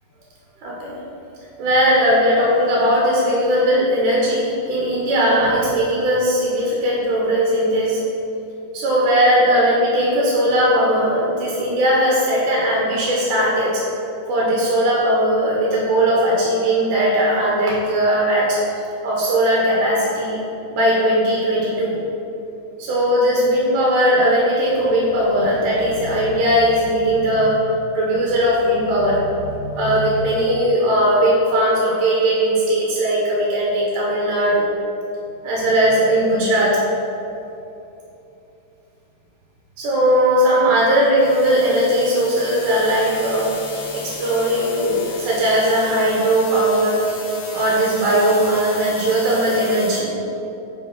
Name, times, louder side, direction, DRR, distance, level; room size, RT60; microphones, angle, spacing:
voice 1, 0.6-0.9 1.6-8.0 8.7-13.8 14.3-18.6 19.0-20.4 20.7-22.0 22.8-27.6 27.9-34.7 35.4-36.8 39.8-47.0 47.5-50.1, equal, 80° right, -5 dB, 2.4 m, -18 dB
sound 1, 41.2-50.0, left 4 dB, 70° left, 1.9 m, -35 dB
5.1 x 4.0 x 5.2 m, 2.9 s
omnidirectional pair, 3.6 m